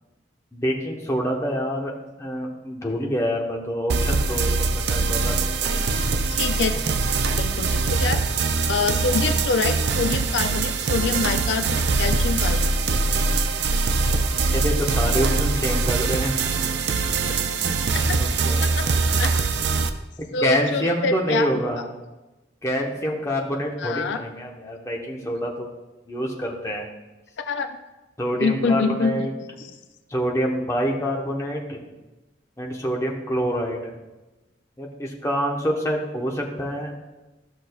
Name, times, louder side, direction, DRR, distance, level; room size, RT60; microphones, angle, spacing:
voice 1, 0.5-5.3 5.6-5.7 14.3-16.6 17.3-17.7 18.2-19.0 20.4-21.8 22.6-25.7 26.1-26.9 28.2-29.3 30.1-31.8 32.6-33.9 34.8-36.9, equal, 15° left, -1 dB, 1.0 m, -26 dB
sound 1, 3.9-19.9, right 4 dB, 60° right, 0.4 m, -23 dB
voice 2, 6.3-6.7 7.4-8.2 8.7-12.6 17.9-18.2 18.6-18.8 19.2-19.4 20.3-21.5 23.8-24.2 27.5-27.7 28.4-29.2, left 4 dB, 75° left, 8 dB, 0.4 m, -25 dB
13.0 x 6.2 x 2.3 m, 1.1 s
head